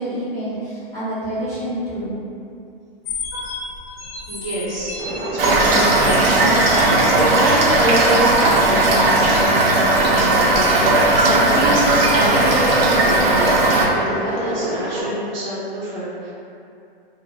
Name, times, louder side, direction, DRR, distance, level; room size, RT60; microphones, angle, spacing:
voice 1, 0.0-2.2, right 1 dB, 10° left, -13 dB, 0.7 m, -27 dB
sound 1, 3.0-7.6, left 3 dB, 75° left, 0.7 m, -33 dB
voice 2, 4.3-16.3, right 1 dB, 50° right, -7 dB, 0.8 m, -26 dB
sound 2, 5.0-15.0, right 1 dB, 20° right, 0.4 m, -28 dB
Toilet flush / Fill (with liquid), 5.4-13.9, right 2 dB, 75° right, 0.6 m, -16 dB
2.1 x 2.1 x 3.4 m, 2.6 s
hypercardioid pair, 135°, 30 cm